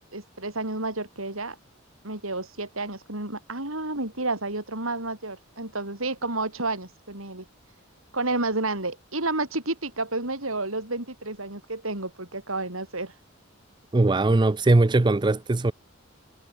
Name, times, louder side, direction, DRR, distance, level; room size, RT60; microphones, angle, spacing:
voice 1, 0.1-1.6 2.0-7.5 8.1-13.1, right 2 dB, 85° right, 6.9 m, -30 dB
voice 2, 13.9-15.7, right 2 dB, 20° right, 0.5 m, -20 dB
head